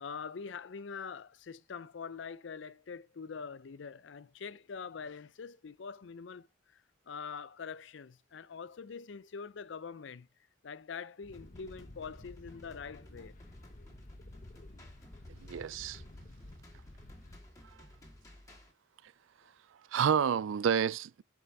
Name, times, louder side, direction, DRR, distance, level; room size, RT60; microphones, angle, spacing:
voice 1, 0.0-6.5 6.7-10.3 10.6-13.3, left 5 dB, 65° left, 0.5 m, -44 dB
sound 1, 11.2-17.4, left 1 dB, 40° left, 1.0 m, -53 dB
sound 2, 11.3-18.7, left 1 dB, 15° left, 2.5 m, -55 dB
voice 2, 15.4-16.0 19.9-21.2, right 8 dB, 75° right, 0.4 m, -29 dB
6.7 x 5.5 x 5.9 m
head